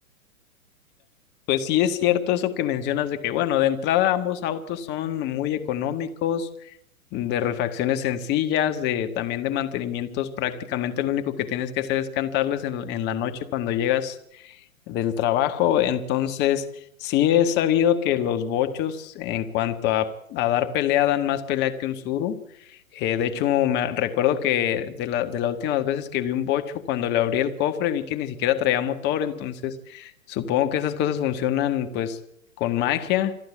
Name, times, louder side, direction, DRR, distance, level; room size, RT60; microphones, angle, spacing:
voice 1, 1.5-6.8 7.1-14.6 14.9-16.7 17.0-22.4 22.7-32.2 32.6-33.4, left 11 dB, 25° left, 9 dB, 1.5 m, -24 dB
27.5 x 10.5 x 9.2 m, 0.74 s
figure-of-eight pair, 115°, 42 cm